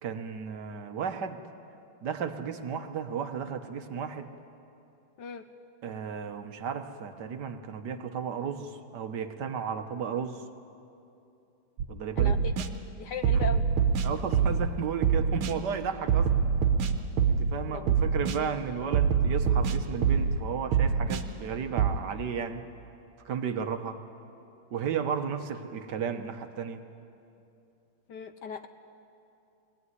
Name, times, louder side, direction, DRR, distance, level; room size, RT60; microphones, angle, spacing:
voice 1, 0.0-1.4 2.0-4.3 5.8-10.4 11.9-12.3 13.3-13.4 14.0-16.3 17.3-22.7 23.2-24.0 24.7-26.8, right 7 dB, 60° right, 8 dB, 1.4 m, -34 dB
sound 1, 11.8-11.9 12.2-12.7 13.2-14.7 15.0-15.5 16.1-17.5 17.9-18.4 18.9-20.4 20.7-21.2 21.8-21.9, right 7 dB, 75° right, 1.8 m, -24 dB
voice 2, 12.2-12.5 13.0-13.6 17.7-17.9 28.1-28.7, left 5 dB, 65° left, 9 dB, 1.1 m, -37 dB
22.5 x 17.0 x 9.6 m, 2.7 s
omnidirectional pair, 2.4 m